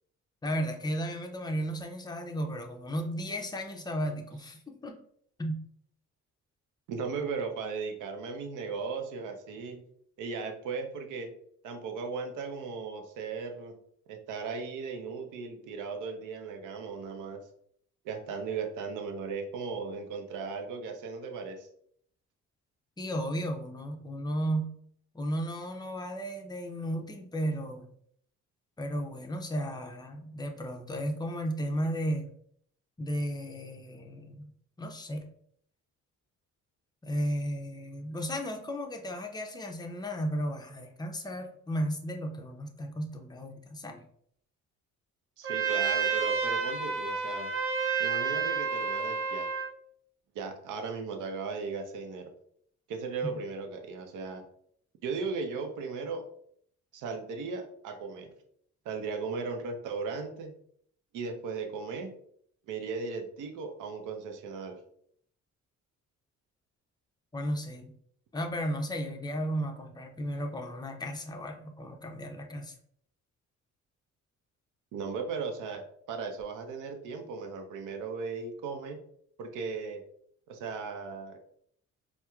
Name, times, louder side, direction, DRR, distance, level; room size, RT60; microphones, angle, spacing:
voice 1, 0.4-5.0 5.4-5.6 23.0-24.7 25.1-27.9 28.8-32.3 33.0-34.5 34.8-35.3 37.0-44.1 67.3-67.9 68.3-72.7, equal, 15° left, 3 dB, 0.5 m, -34 dB
voice 2, 6.9-9.8 10.2-11.3 11.6-13.7 14.1-17.4 18.0-21.7 45.4-47.5 48.0-49.5 50.3-52.3 52.9-54.4 55.0-56.3 56.9-58.3 58.8-60.5 61.1-62.1 62.7-64.8 74.9-79.0 79.4-80.0 80.5-81.4, right 4 dB, 85° right, 5 dB, 0.6 m, -37 dB
Trumpet, 45.4-49.7, right 5 dB, 45° right, 0.7 m, -30 dB
4.3 x 2.1 x 2.3 m, 0.65 s
cardioid pair, 90°, 30 cm